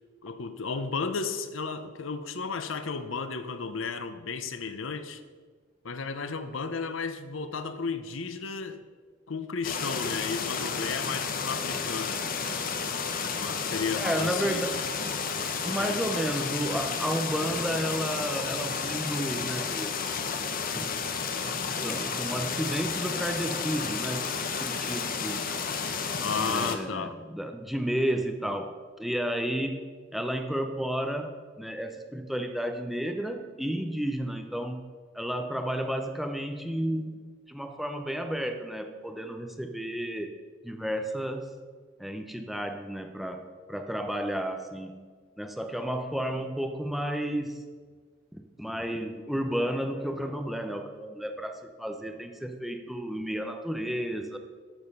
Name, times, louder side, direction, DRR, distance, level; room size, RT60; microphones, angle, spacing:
voice 1, 0.2-5.2 5.8-8.8 9.3-12.2 13.3-14.6 15.6-16.1 26.2-27.1, left 4 dB, 85° left, 10 dB, 0.8 m, -33 dB
sound 1, 9.6-26.8, left 5 dB, 45° left, 0.9 m, -32 dB
voice 2, 13.9-14.8 15.6-19.9 20.7-20.9 21.5-25.5 26.4-29.9 30.1-34.9 35.1-37.2 37.5-40.3 40.6-41.5 42.0-45.0 45.4-47.6 48.3-54.4, equal, ahead, 5 dB, 0.7 m, -32 dB
12.5 x 6.8 x 5.4 m, 1.5 s
head